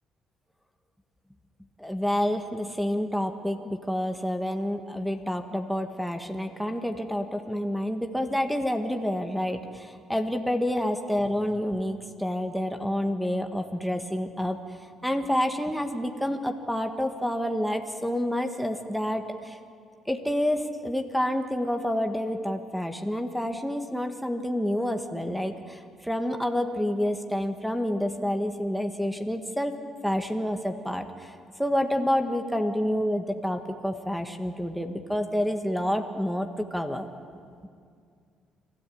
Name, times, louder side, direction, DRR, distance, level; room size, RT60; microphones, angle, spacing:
voice 1, 1.8-14.6 15.0-19.6 20.1-29.7 30.0-31.3 31.6-37.1, equal, ahead, 6 dB, 1.5 m, -28 dB
27.5 x 13.5 x 8.6 m, 2.2 s
supercardioid pair, 70°, 0 cm